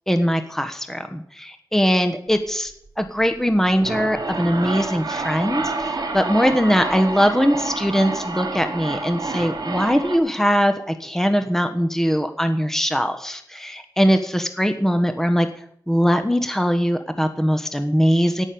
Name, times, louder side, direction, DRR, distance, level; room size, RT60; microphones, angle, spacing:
voice 1, 0.1-2.7 3.0-15.5 15.9-18.4, equal, 5° left, 8 dB, 1.3 m, -21 dB
sound 1, 3.6-10.2, right 3 dB, 55° right, 2.8 m, -28 dB
17.0 x 6.4 x 8.7 m, 0.68 s
wide cardioid pair, 90°, 8 cm